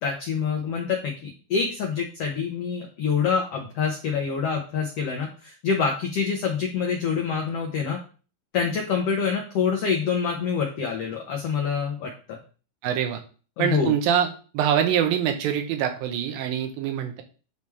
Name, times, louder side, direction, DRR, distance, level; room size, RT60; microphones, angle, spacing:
voice 1, 0.0-8.0 8.5-12.4 13.6-13.9, left 6 dB, 85° left, 1 dB, 1.3 m, -26 dB
voice 2, 12.8-13.2 13.6-14.3 14.5-17.2, right 9 dB, 85° right, 5 dB, 2.6 m, -24 dB
9.4 x 3.2 x 3.5 m, 0.38 s
omnidirectional pair, 4.1 m